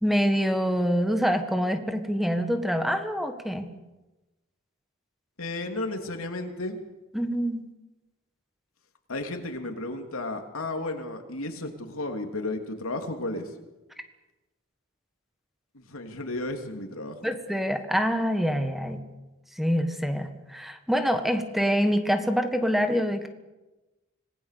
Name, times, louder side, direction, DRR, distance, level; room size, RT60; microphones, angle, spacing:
voice 1, 0.0-3.7 7.1-7.6 17.2-19.0 19.6-23.3, equal, ahead, 7 dB, 1.6 m, -25 dB
voice 2, 5.4-6.8 9.1-13.5 15.7-17.2, left 2 dB, 90° left, 4 dB, 3.1 m, -33 dB
26.0 x 20.0 x 6.8 m, 1.1 s
head